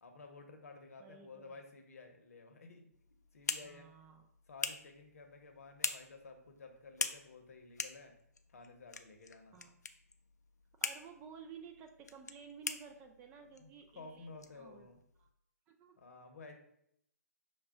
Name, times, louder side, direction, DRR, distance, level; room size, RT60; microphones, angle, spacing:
voice 1, 0.0-2.9 3.3-3.9 4.5-8.2 8.5-9.6 13.6-15.0 15.9-16.6, left 3 dB, 60° left, 4 dB, 0.8 m, -53 dB
voice 2, 1.0-1.6 3.6-4.3 9.5-9.8 10.8-14.9 15.2-15.3 15.7-16.0, right 6 dB, 20° right, 4 dB, 0.4 m, -54 dB
sound 1, 2.9-15.3, left 4 dB, 80° left, 0.4 m, -44 dB
5.9 x 2.2 x 3.6 m, 0.74 s
figure-of-eight pair, 130°, 9 cm